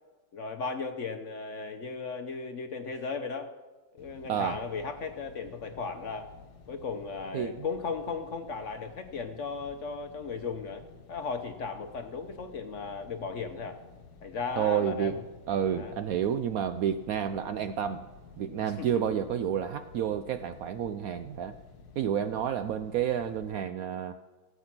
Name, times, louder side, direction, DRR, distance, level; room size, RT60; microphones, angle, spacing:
voice 1, 0.3-3.5 3.9-6.3 6.7-10.8 11.1-13.8 14.2-15.2 15.7-15.9 18.6-19.2, left 4 dB, 55° left, 7 dB, 0.9 m, -36 dB
sound 1, 4.0-23.6, left 5 dB, 80° left, 1.6 m, -53 dB
voice 2, 7.3-7.6 14.6-15.2 15.5-18.1 18.4-21.5 22.0-24.2, right 9 dB, 70° right, 10 dB, 0.8 m, -30 dB
16.0 x 8.3 x 6.0 m, 1.3 s
omnidirectional pair, 1.9 m